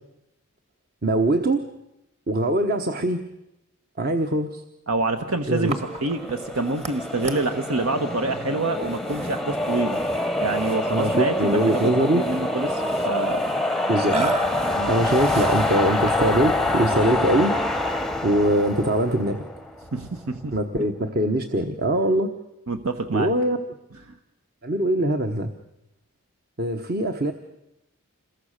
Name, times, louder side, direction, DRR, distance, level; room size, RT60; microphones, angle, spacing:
voice 1, 1.0-1.7 2.3-3.2 4.0-4.6 5.5-5.7 10.9-12.2 13.9-14.1 14.8-17.5 18.2-19.5 20.5-22.3 23.1-23.6 24.6-25.5 26.6-27.3, right 1 dB, 45° right, 6 dB, 1.2 m, -22 dB
voice 2, 4.9-10.0 10.4-13.4 14.1-14.3 14.7-14.9 19.9-20.6 22.7-23.3 24.1-24.2, right 2 dB, 75° right, 7 dB, 1.2 m, -27 dB
sound 1, 5.7-20.0, left 1 dB, ahead, 0.8 m, -26 dB
Burping eructation, 5.7-16.4, right 2 dB, 30° right, 1.6 m, -35 dB
27.0 x 22.5 x 6.7 m, 0.88 s
head